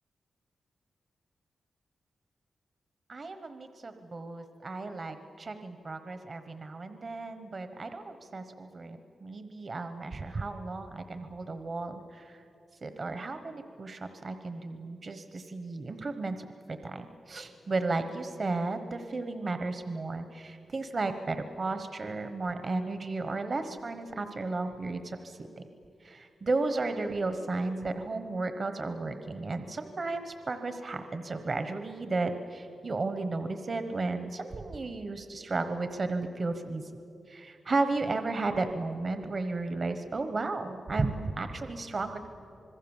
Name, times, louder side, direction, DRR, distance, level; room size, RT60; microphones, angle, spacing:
voice 1, 3.1-12.4 12.8-25.7 26.0-36.9 37.3-42.2, right 3 dB, 40° right, 8 dB, 1.2 m, -34 dB
26.0 x 21.5 x 7.3 m, 2.8 s
wide cardioid pair, 115°, 0 cm